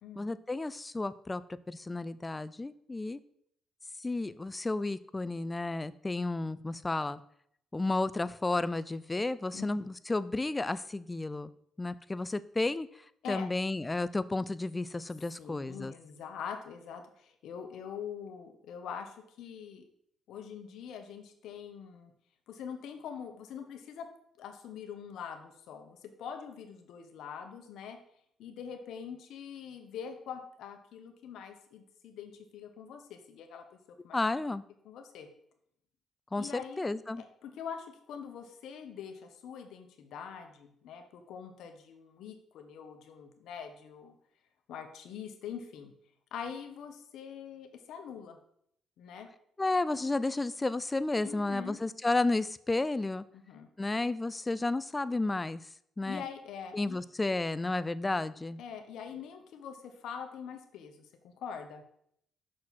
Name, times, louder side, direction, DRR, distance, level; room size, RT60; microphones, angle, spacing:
voice 1, 0.2-1.4 1.7-3.2 4.0-7.2 7.7-11.5 11.8-12.9 13.3-15.9 34.1-34.6 36.3-37.2 49.6-53.2 53.8-55.6 56.0-56.2 56.7-58.6, left 2 dB, 20° left, 16 dB, 0.4 m, -32 dB
voice 2, 15.4-19.9 20.3-22.1 22.5-24.1 24.4-28.0 28.4-33.8 34.0-34.2 34.8-35.3 36.4-36.8 37.2-44.1 44.7-45.9 46.3-48.4 49.0-49.3 51.2-51.8 53.3-53.7 56.0-57.0 58.6-61.8, left 7 dB, 80° left, 6 dB, 1.1 m, -44 dB
6.4 x 6.2 x 4.1 m, 0.69 s
cardioid pair, 90°, 0 cm